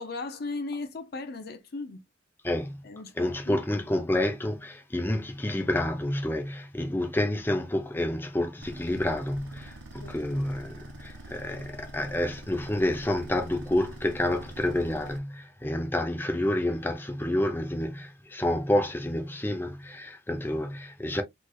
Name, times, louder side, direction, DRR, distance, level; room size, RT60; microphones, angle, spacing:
voice 1, 0.0-2.0 2.8-3.6 10.0-10.3 20.3-20.4, left 3 dB, 50° left, 0.5 m, -37 dB
voice 2, 2.4-2.8 3.2-21.2, left 1 dB, 10° left, 0.6 m, -29 dB
sound 1, 8.6-15.2, right 1 dB, 70° right, 0.9 m, -45 dB
3.3 x 3.1 x 2.3 m
head